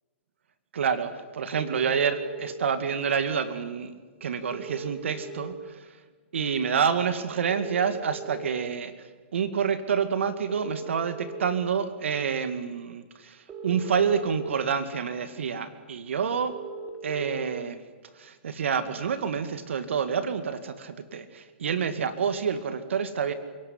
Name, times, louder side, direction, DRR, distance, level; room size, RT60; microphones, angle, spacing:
voice 1, 0.7-3.9 4.2-5.8 6.3-8.9 9.3-16.5 17.0-17.8 18.2-23.3, right 6 dB, 75° right, 12 dB, 2.1 m, -28 dB
sound 1, 1.6-2.5 4.5-5.5 7.5-8.5 10.5-11.5 13.5-14.5 16.5-17.5, right 4 dB, 20° right, 3.8 m, -39 dB
29.5 x 18.0 x 9.8 m, 1.4 s
hypercardioid pair, 130°, 7 cm